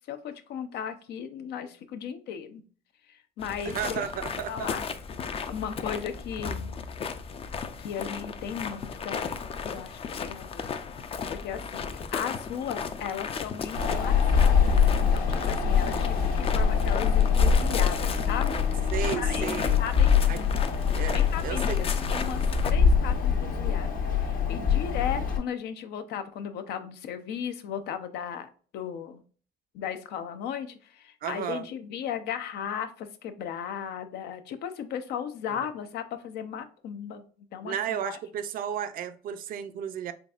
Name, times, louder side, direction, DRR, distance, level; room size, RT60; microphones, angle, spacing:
voice 1, 0.1-2.6 3.1-4.0 4.5-4.9 5.5-6.7 7.8-10.7 11.1-20.5 21.1-23.9 24.2-29.2 29.7-37.2 37.5-37.8 38.0-38.2, left 8 dB, 75° left, 9 dB, 0.6 m, -36 dB
sound 1, 3.4-22.7, left 6 dB, 35° left, 0.4 m, -35 dB
voice 2, 3.6-4.7 18.9-19.8 20.2-20.4 21.0-21.9 31.2-31.7 35.5-35.7 37.6-40.1, right 9 dB, 55° right, 11 dB, 0.4 m, -33 dB
Wind, 13.7-25.4, left 6 dB, 55° left, 1.0 m, -24 dB
3.9 x 3.4 x 2.4 m, 0.42 s
cardioid pair, 110°, 17 cm